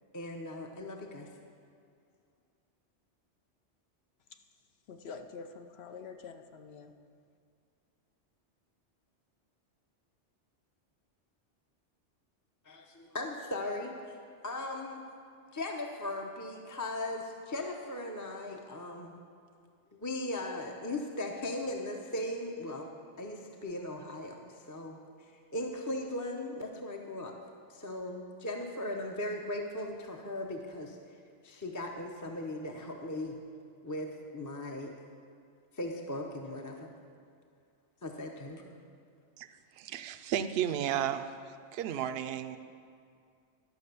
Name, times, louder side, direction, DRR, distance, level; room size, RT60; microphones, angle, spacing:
voice 1, 0.1-1.3 12.7-14.2 14.4-15.0 15.5-19.2 19.9-22.9 23.2-25.0 25.5-27.3 27.7-31.0 31.4-33.4 33.8-35.0 35.7-36.9 38.0-38.7, left 1 dB, 20° left, 1 dB, 0.6 m, -38 dB
voice 2, 4.9-6.9, left 5 dB, 65° left, 7 dB, 0.8 m, -46 dB
voice 3, 39.8-41.3 41.7-42.6, right 10 dB, 65° right, 9 dB, 0.7 m, -33 dB
12.0 x 5.9 x 6.7 m, 2.3 s
omnidirectional pair, 1.2 m